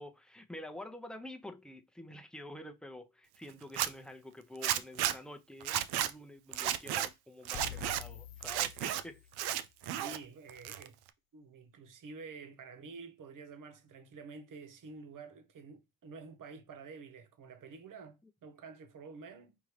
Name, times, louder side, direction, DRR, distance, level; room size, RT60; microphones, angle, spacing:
voice 1, 0.0-9.2, left 1 dB, ahead, 0.7 m, -48 dB
Zipper (clothing), 3.6-3.9 4.6-5.1 5.6-6.1 6.5-7.1 7.4-8.0 8.4-9.0 9.3-10.2 10.5-11.1, right 12 dB, 80° right, 0.5 m, -33 dB
sound 1, 7.5-9.6, left 10 dB, 60° left, 0.7 m, -47 dB
voice 2, 10.0-11.0 11.3-19.6, right 4 dB, 55° right, 1.0 m, -49 dB
5.1 x 2.8 x 3.2 m
supercardioid pair, 65°, 38 cm